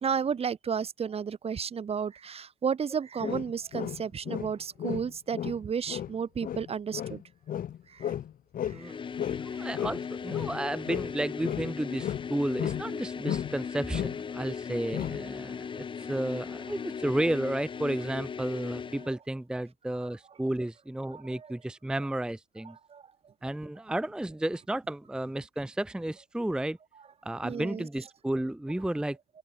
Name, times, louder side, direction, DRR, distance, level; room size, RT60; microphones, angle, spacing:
voice 1, 0.0-7.2 7.9-8.1 8.7-8.9 9.5-9.7 15.7-15.8 21.1-21.5 22.9-23.3 27.4-27.9, right 7 dB, 35° right, 2.2 m, -33 dB
sound 1, 3.2-4.5 4.8-8.9 9.2-11.2 11.4-13.0 13.2-13.7 13.9-14.2 14.9-15.3, left 10 dB, 55° left, 4.9 m, -34 dB
voice 2, 8.7-9.2 9.5-22.8 23.4-26.8 27.2-29.2, right 1 dB, 5° right, 0.7 m, -32 dB
sound 2, 8.8-19.1, left 6 dB, 30° left, 0.8 m, -38 dB
open air
cardioid pair, 110°, 17 cm